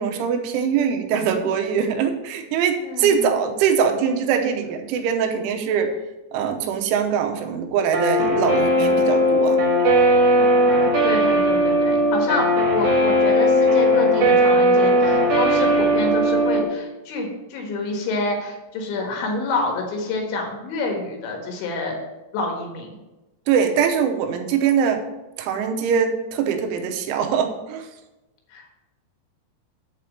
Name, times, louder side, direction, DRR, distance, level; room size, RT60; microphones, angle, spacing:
voice 1, 0.0-6.0 6.3-9.6 23.5-25.0 25.4-27.9, right 7 dB, 85° right, 4 dB, 3.2 m, -22 dB
voice 2, 2.8-3.3 10.7-22.0 22.3-22.9 28.5-28.7, left 3 dB, 75° left, 1 dB, 3.7 m, -27 dB
Guitar, 7.9-16.6, equal, 60° right, 1.6 m, -18 dB
9.1 x 4.3 x 7.3 m, 1.0 s
omnidirectional pair, 5.6 m